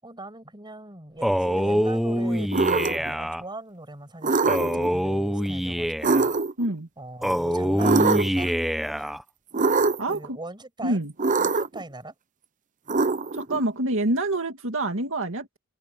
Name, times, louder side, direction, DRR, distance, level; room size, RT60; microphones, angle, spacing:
voice 1, 0.0-6.3 7.0-8.5 9.0-9.2 10.1-11.0 11.4-12.1, right 2 dB, 20° right, 6.1 m, -41 dB
Male speech man speaking, 1.2-3.4 4.5-6.3 7.2-9.2, equal, ahead, 0.8 m, -25 dB
sound 1, 1.5-2.5 4.5-5.5 7.5-7.9, left 1 dB, 60° left, 1.4 m, -39 dB
sound 2, 2.5-3.1 4.2-4.9 6.0-6.7 7.8-8.5 9.5-10.2 11.2-11.8 12.9-13.6, right 4 dB, 35° right, 0.8 m, -23 dB
voice 2, 6.6-6.9 10.0-10.4 10.8-11.1 13.3-15.6, right 2 dB, 65° right, 2.2 m, -27 dB
open air
head